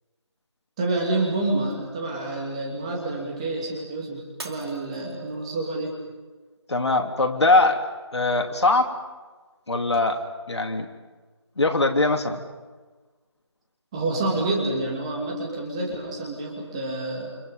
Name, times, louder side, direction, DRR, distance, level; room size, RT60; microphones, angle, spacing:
voice 1, 0.8-6.0 13.9-17.3, right 2 dB, 10° right, -1 dB, 2.7 m, -28 dB
Shatter, 4.4-5.7 6.2-6.7 7.2-7.3, right 2 dB, 60° right, 2.6 m, -42 dB
voice 2, 6.7-7.8 8.1-8.9 9.7-10.2 10.5-10.9 11.6-12.5, left 2 dB, 70° left, 4 dB, 3.1 m, -21 dB
29.5 x 27.5 x 5.3 m, 1.3 s
figure-of-eight pair, 175°, 15 cm